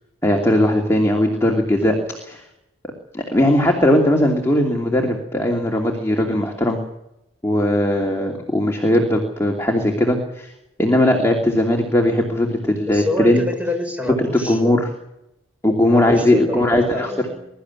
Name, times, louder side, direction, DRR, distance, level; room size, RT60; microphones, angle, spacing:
voice 1, 0.2-2.4 3.1-6.8 7.4-10.5 10.8-13.4 14.2-14.9 15.6-17.1, left 1 dB, 15° left, 1 dB, 2.8 m, -18 dB
voice 2, 12.8-14.9 15.9-17.5, left 1 dB, 5° right, 3 dB, 4.8 m, -27 dB
22.5 x 13.0 x 9.7 m, 0.84 s
head